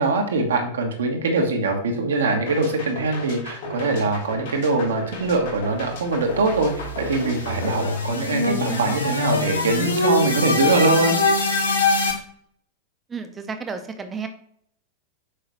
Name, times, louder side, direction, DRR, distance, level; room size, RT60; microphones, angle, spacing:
voice 1, 0.0-11.1, right 3 dB, 65° right, 3 dB, 1.2 m, -22 dB
sound 1, 2.5-8.7, left 2 dB, 55° left, 2.6 m, -36 dB
sound 2, 5.7-12.1, left 3 dB, 75° left, 1.0 m, -24 dB
voice 2, 13.1-14.3, right 5 dB, 20° right, 8 dB, 0.8 m, -32 dB
6.6 x 5.0 x 3.0 m, 0.64 s
figure-of-eight pair, 90°, 0 cm